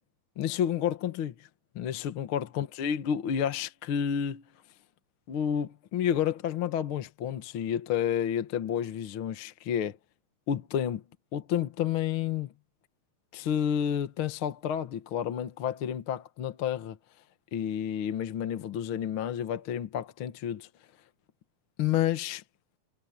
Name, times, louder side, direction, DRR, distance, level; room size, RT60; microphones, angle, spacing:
voice 1, 0.4-1.5 1.8-4.4 5.3-10.0 10.5-11.0 11.3-12.5 13.3-17.0 17.5-20.7 21.8-22.4, left 9 dB, 55° left, 1.6 m, -30 dB
omnidirectional pair, 3.7 m